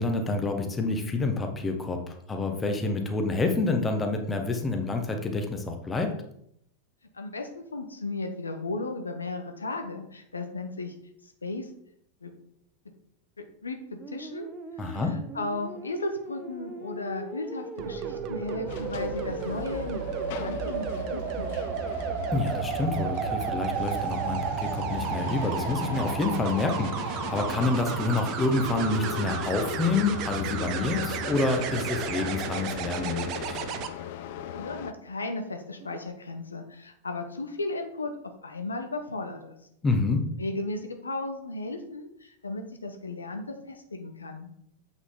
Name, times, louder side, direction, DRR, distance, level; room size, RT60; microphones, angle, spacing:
voice 1, 0.0-6.2 14.8-15.2 22.3-33.6 39.8-40.2, left 3 dB, 15° left, 4 dB, 1.2 m, -28 dB
voice 2, 7.1-10.9 11.4-11.7 12.2-12.3 13.4-13.8 14.1-14.5 14.8-20.0 20.3-21.6 34.5-38.1 38.4-39.5 40.4-44.5, left 2 dB, 75° left, 5 dB, 1.0 m, -35 dB
sound 1, 14.0-29.5, right 2 dB, 10° right, 0.9 m, -41 dB
sound 2, 17.8-33.9 35.8-36.1, right 8 dB, 40° right, 0.7 m, -33 dB
sound 3, 18.7-34.9, left 11 dB, 50° left, 0.5 m, -39 dB
8.0 x 6.2 x 3.7 m, 0.72 s
figure-of-eight pair, 90°, 0 cm